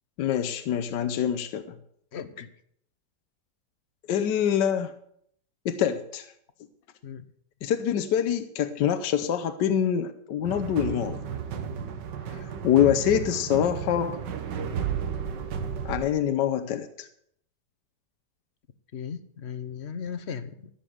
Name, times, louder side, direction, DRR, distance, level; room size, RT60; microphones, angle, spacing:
voice 1, 0.2-1.6 4.1-4.9 5.6-6.3 7.6-11.2 12.3-14.2 15.8-17.1, left 9 dB, 80° left, 9 dB, 1.4 m, -25 dB
voice 2, 2.1-2.5 7.0-7.2 18.9-20.7, left 7 dB, 50° left, 12 dB, 0.9 m, -37 dB
sound 1, 10.4-16.1, right 7 dB, 85° right, 1.8 m, -33 dB
14.5 x 7.1 x 7.9 m, 0.68 s
omnidirectional pair, 1.9 m